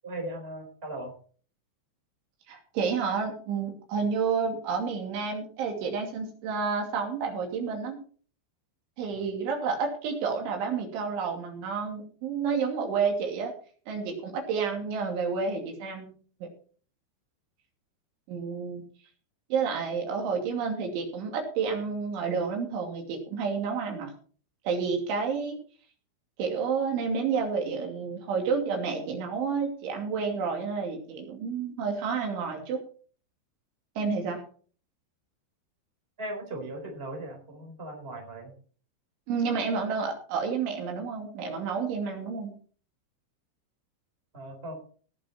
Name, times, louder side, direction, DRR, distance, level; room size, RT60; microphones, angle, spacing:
voice 1, 0.0-1.1 9.1-9.3 36.2-38.5 44.3-44.7, right 1 dB, 15° right, 2 dB, 3.6 m, -38 dB
voice 2, 2.5-8.0 9.0-13.5 13.9-16.1 16.4-16.5 18.3-18.8 19.5-24.1 24.6-25.6 26.4-32.8 34.0-34.4 39.3-42.6, right 5 dB, 80° right, 2 dB, 5.1 m, -30 dB
18.0 x 7.8 x 4.4 m, 0.43 s
omnidirectional pair, 5.3 m